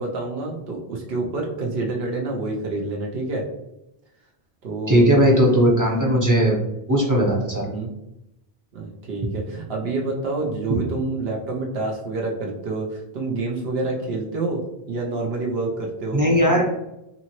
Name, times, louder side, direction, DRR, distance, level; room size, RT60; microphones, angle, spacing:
voice 1, 0.0-3.4 4.6-5.0 6.6-6.7 7.6-7.9 8.7-16.2, right 3 dB, 75° right, -1 dB, 0.9 m, -28 dB
voice 2, 4.9-6.6 6.9-7.7 16.1-16.7, equal, 20° right, -3 dB, 0.6 m, -18 dB
2.7 x 2.6 x 2.8 m, 0.88 s
omnidirectional pair, 1.1 m